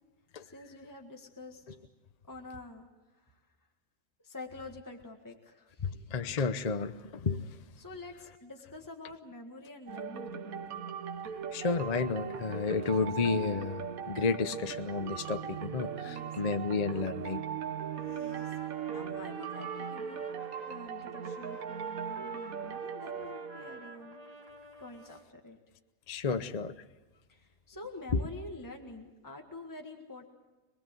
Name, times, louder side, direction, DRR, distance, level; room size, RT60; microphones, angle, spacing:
voice 1, 0.4-1.6 2.3-3.4 4.2-6.1 7.8-10.6 16.0-16.3 16.9-17.1 18.2-24.2 24.8-25.6 27.3-30.3, left 2 dB, 15° left, 1.8 m, -47 dB
voice 2, 6.1-7.4 11.5-17.4 26.1-26.7, left 4 dB, 35° left, 0.8 m, -31 dB
sound 1, 9.9-24.3, right 8 dB, 80° right, 1.4 m, -39 dB
Trumpet, 17.9-20.8 21.1-25.2, right 1 dB, 25° right, 2.7 m, -50 dB
26.5 x 20.0 x 7.7 m
omnidirectional pair, 1.5 m